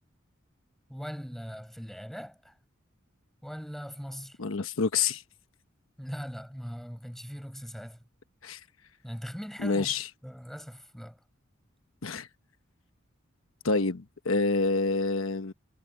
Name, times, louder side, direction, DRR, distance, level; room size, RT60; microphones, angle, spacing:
voice 1, 0.9-2.6 3.4-4.4 6.0-8.0 9.0-9.9 10.2-11.2, equal, ahead, 7.4 m, -40 dB
voice 2, 4.4-5.2 8.4-8.6 9.6-10.1 12.0-12.3 13.6-15.5, left 3 dB, 85° left, 1.1 m, -27 dB
head